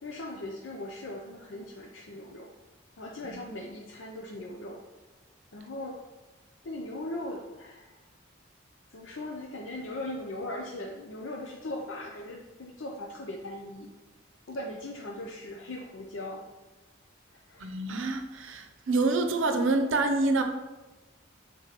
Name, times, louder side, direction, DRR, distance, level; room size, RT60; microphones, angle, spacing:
voice 1, 0.0-2.5 3.0-4.8 5.5-6.0 6.6-7.9 8.9-13.9 14.5-16.4 17.3-17.8, left 1 dB, 75° left, 0 dB, 0.6 m, -39 dB
voice 2, 17.6-20.4, right 2 dB, 80° right, 5 dB, 0.7 m, -27 dB
6.7 x 3.7 x 4.0 m, 1.2 s
head